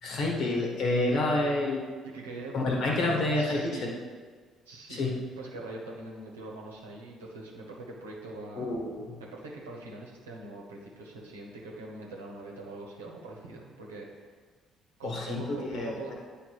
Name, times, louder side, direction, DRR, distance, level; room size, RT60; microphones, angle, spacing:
voice 1, 0.0-1.8 2.5-3.9 4.9-5.1 8.5-9.1 15.0-16.1, left 2 dB, 65° left, -1 dB, 1.5 m, -28 dB
voice 2, 2.0-3.8 4.7-5.0 5.4-8.7 9.3-14.1 15.0-16.1, right 2 dB, 85° right, -2 dB, 1.0 m, -43 dB
9.0 x 3.6 x 4.7 m, 1.5 s
hypercardioid pair, 50°, 0 cm